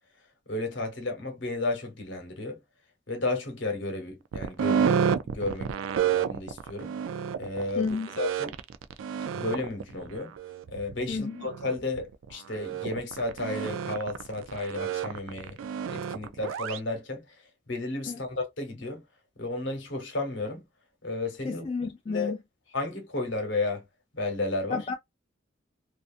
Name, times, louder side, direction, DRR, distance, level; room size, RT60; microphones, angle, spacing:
voice 1, 0.5-2.6 3.1-5.0 5.2-5.7 6.0-6.9 7.4-7.9 8.2-8.6 9.3-10.3 10.7-15.6 15.9-17.3 17.7-19.0 19.4-20.6 21.0-21.7 22.1-22.3 22.7-23.8 24.1-24.8, left 2 dB, 65° left, 1.0 m, -32 dB
sound 1, 4.3-16.8, right 7 dB, 85° right, 0.3 m, -30 dB
voice 2, 7.8-8.1 11.1-11.4 18.1-18.2 21.4-22.4 24.7-24.9, left 4 dB, 30° left, 0.3 m, -31 dB
2.6 x 2.4 x 2.4 m
head